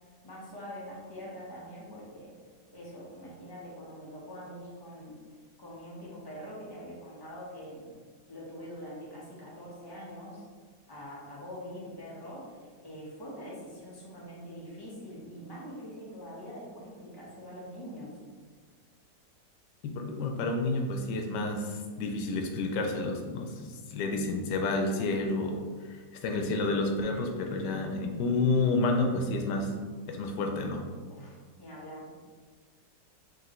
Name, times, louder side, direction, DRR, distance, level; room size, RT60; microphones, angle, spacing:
voice 1, 0.2-2.3 2.7-5.2 5.6-7.9 8.3-10.5 10.9-18.2 31.1-32.2, equal, 15° left, -6 dB, 0.9 m, -44 dB
voice 2, 19.8-29.7 30.1-30.9, left 3 dB, 85° left, 3 dB, 1.2 m, -30 dB
5.0 x 3.1 x 3.0 m, 1.5 s
omnidirectional pair, 1.8 m